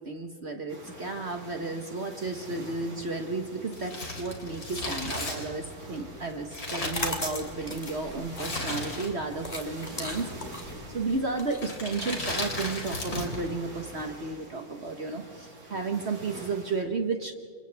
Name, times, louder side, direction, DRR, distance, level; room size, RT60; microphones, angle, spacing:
voice 1, 0.0-10.3 10.6-17.3, right 3 dB, 45° right, 5 dB, 1.4 m, -33 dB
sound 1, 0.7-16.8, right 1 dB, 70° right, 4.4 m, -46 dB
Crumpling crinkling, 3.7-7.7 8.3-9.4 9.6-9.7 10.5-10.9 11.5-13.5 13.7-13.8, left 2 dB, 70° left, 4.1 m, -35 dB
sound 2, 6.6-12.4, left 2 dB, 25° left, 2.6 m, -37 dB
29.5 x 28.0 x 3.5 m, 2.1 s
omnidirectional pair, 1.6 m